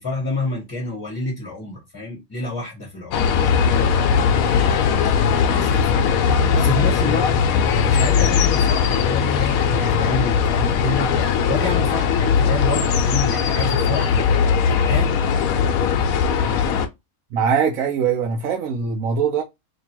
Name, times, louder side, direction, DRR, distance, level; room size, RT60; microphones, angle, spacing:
voice 1, 0.0-15.1, left 2 dB, 15° left, 1.1 m, -29 dB
sound 1, 3.1-16.9, left 6 dB, 80° left, 1.0 m, -19 dB
voice 2, 17.3-19.4, right 6 dB, 75° right, 1.1 m, -21 dB
2.9 x 2.6 x 4.3 m
omnidirectional pair, 1.5 m